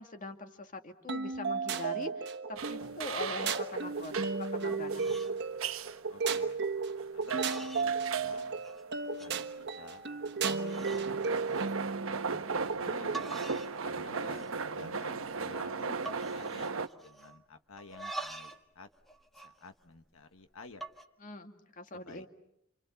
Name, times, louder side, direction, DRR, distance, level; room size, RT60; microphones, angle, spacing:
voice 1, 0.0-5.1 21.2-22.3, left 2 dB, 40° left, 6 dB, 2.2 m, -43 dB
sound 1, 1.1-13.2, right 4 dB, 55° right, 1.3 m, -34 dB
sound 2, 2.5-3.1 3.4-3.6 4.1-4.4 4.7-5.3 5.7-6.0 6.7-6.8 7.3-7.9 8.3-8.8 9.2-9.3 9.9-10.0 10.4-11.1 11.5-11.8 12.8-12.9 13.1-13.8 14.1-14.7 15.0-15.1 15.3-15.6 16.1-17.4 17.8-18.6 18.9-20.2 20.7-21.0, right 3 dB, ahead, 1.7 m, -45 dB
sound 3, 2.6-16.9, right 5 dB, 75° right, 1.0 m, -38 dB
voice 2, 6.1-6.6 7.1-8.5 8.9-9.5 9.8-10.5 10.9-13.2 13.8-18.9 19.4-20.8 21.9-22.3, left 3 dB, 80° left, 7 dB, 1.3 m, -52 dB
29.0 x 28.0 x 7.0 m, 0.81 s
head